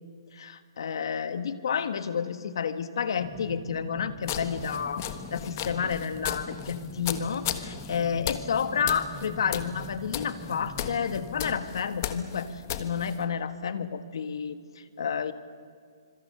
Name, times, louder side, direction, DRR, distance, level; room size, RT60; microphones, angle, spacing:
voice 1, 0.3-15.3, left 7 dB, 70° left, 11 dB, 1.6 m, -30 dB
sound 1, 3.2-11.6, right 1 dB, ahead, 0.8 m, -44 dB
sound 2, 4.2-13.2, left 10 dB, 35° left, 1.4 m, -36 dB
25.5 x 24.5 x 6.8 m, 2.1 s
hypercardioid pair, 165°, 3 cm